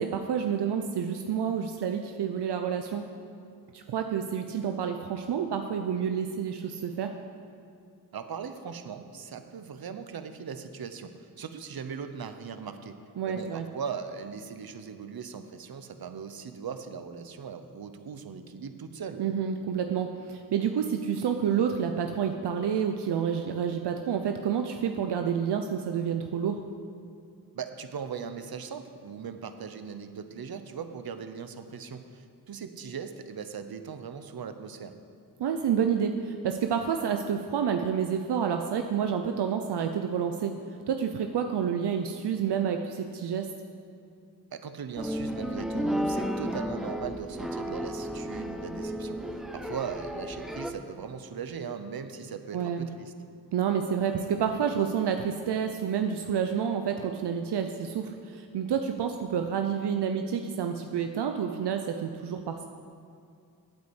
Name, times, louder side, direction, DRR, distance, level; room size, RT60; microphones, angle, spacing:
voice 1, 0.0-3.1 3.7-7.2 13.2-13.6 19.2-26.6 35.4-40.6 40.9-43.5 52.5-52.9 53.5-62.7, right 7 dB, 85° right, 5 dB, 0.7 m, -29 dB
voice 2, 8.1-19.2 27.5-34.9 44.5-49.2 49.5-53.1, right 6 dB, 65° right, 9 dB, 0.9 m, -39 dB
sound 1, 45.0-50.7, equal, ahead, 0.8 m, -33 dB
8.9 x 8.5 x 8.0 m, 2.4 s
cardioid pair, 50°, 39 cm